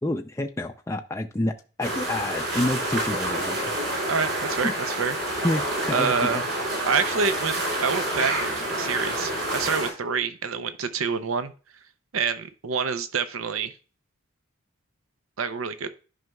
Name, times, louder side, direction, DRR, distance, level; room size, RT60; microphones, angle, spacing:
voice 1, 0.0-1.5 1.8-4.1 4.6-4.7 5.4-6.4, left 1 dB, 15° left, 4 dB, 0.4 m, -28 dB
sound 1, 1.8-9.9, right 1 dB, 55° right, 3.3 m, -28 dB
voice 2, 4.1-5.2 5.9-6.4 6.9-11.5 12.1-13.7 15.4-15.9, right 5 dB, 80° right, 11 dB, 0.6 m, -27 dB
11.0 x 5.5 x 2.3 m, 0.36 s
head